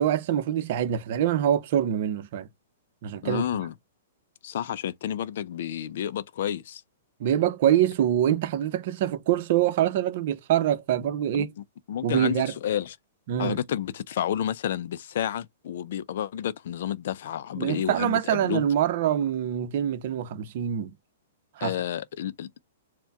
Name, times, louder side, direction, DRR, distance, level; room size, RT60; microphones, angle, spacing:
voice 1, 0.0-2.5 3.0-3.5 7.2-11.5 12.0-12.5 13.3-13.6 17.6-20.9 21.6-21.7, right 10 dB, 45° right, 0.7 m, -25 dB
voice 2, 3.2-3.7 4.4-6.8 11.3-11.5 11.9-13.0 13.4-18.6 21.6-22.5, left 10 dB, 60° left, 0.4 m, -30 dB
4.4 x 2.2 x 3.5 m
hypercardioid pair, 160°, 0 cm